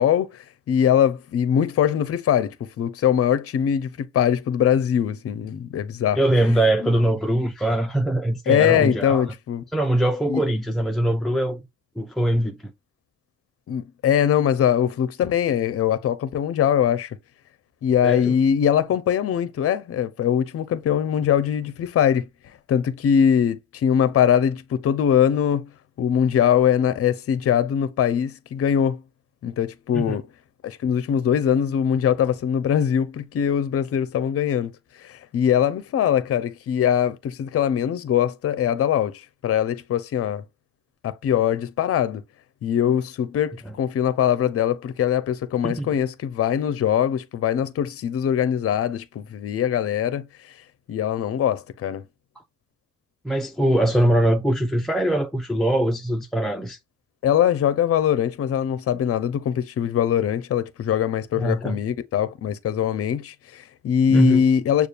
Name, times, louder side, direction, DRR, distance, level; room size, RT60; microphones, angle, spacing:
voice 1, 0.0-6.2 6.8-6.9 8.5-9.6 10.3-10.4 13.7-17.1 17.8-22.3 22.7-25.7 26.0-29.0 29.4-30.2 30.6-34.7 35.0-40.4 41.0-42.2 42.6-50.2 50.9-52.0 57.2-64.9, left 9 dB, 50° left, 0.6 m, -22 dB
voice 2, 6.1-9.3 9.7-11.6 12.0-12.7 18.0-18.4 29.9-30.2 45.6-45.9 53.2-56.8 61.4-61.8 64.1-64.4, right 1 dB, ahead, 0.5 m, -22 dB
6.6 x 2.4 x 2.4 m
cardioid pair, 90°, 30 cm